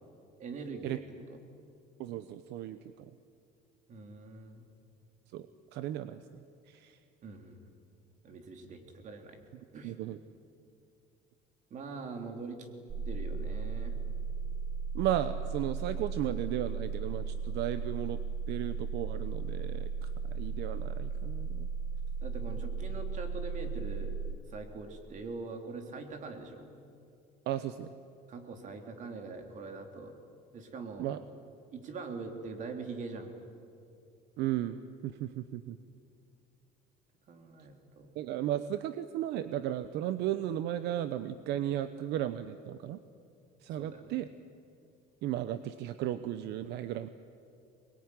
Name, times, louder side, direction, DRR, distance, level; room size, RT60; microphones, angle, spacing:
voice 1, 0.4-1.0 1.3-1.4 3.9-4.7 7.2-7.7 8.2-9.4 9.7-9.9 11.7-12.7 13.0-13.9 22.2-24.2 24.5-26.7 28.3-30.2 30.5-31.1 31.7-33.3 37.3-38.1 43.8-44.1, right 4 dB, 45° right, 5 dB, 3.2 m, -43 dB
voice 2, 2.0-3.2 5.3-5.5 5.7-6.4 6.7-7.0 9.8-10.2 14.9-18.2 18.5-21.7 27.5-27.9 31.0-31.2 34.4-35.8 38.1-43.0 43.6-44.3 45.2-47.1, right 12 dB, 70° right, 12 dB, 0.9 m, -35 dB
sound 1, 12.9-24.3, right 5 dB, 25° right, 1.5 m, -36 dB
23.5 x 21.5 x 9.8 m, 2.4 s
cardioid pair, 140°, 18 cm